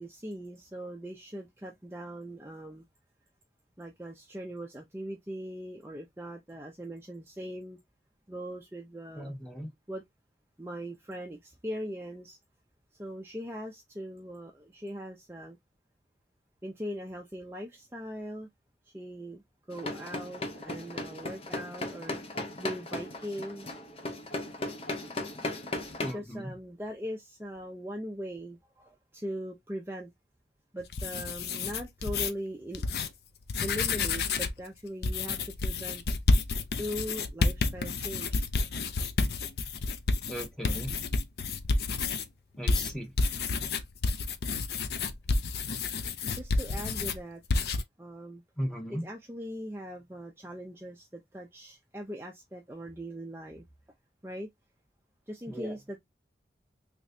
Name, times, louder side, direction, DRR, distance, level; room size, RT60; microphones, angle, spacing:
voice 1, 0.0-2.8 3.8-7.8 8.3-9.3 9.9-10.0 10.6-12.4 13.0-15.6 16.6-18.5 18.9-19.4 19.7-22.2 22.6-23.7 26.0-30.1 30.7-32.8 33.6-36.0 36.8-38.5 45.4-45.5 46.3-47.4 48.0-48.4 48.9-53.6 54.2-54.5 55.3-56.0, equal, 15° right, 0.5 m, -40 dB
voice 2, 9.2-9.7 26.0-26.5 40.3-40.9 42.6-43.1 48.6-49.0 55.5-55.8, equal, 5° left, 1.0 m, -37 dB
sound 1, 19.7-26.1, left 2 dB, 35° left, 0.7 m, -37 dB
sound 2, 30.8-32.3 32.7-33.1 33.4-34.6 35.0-42.3 42.7-47.2 47.5-47.8, left 3 dB, 65° left, 0.5 m, -29 dB
3.4 x 3.0 x 2.6 m
head